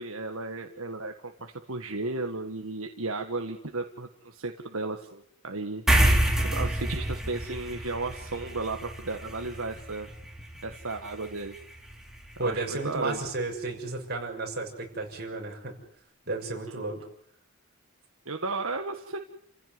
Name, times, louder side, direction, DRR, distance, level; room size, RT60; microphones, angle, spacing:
voice 1, 0.0-5.8 6.4-10.1 10.6-11.6 12.4-13.2 18.3-19.2, right 3 dB, 70° right, 4 dB, 1.7 m, -34 dB
sound 1, 5.9-12.7, right 1 dB, ahead, 4.1 m, -29 dB
voice 2, 12.4-15.8 16.3-17.0, right 2 dB, 45° right, 2 dB, 6.6 m, -33 dB
29.5 x 16.0 x 9.6 m, 0.70 s
head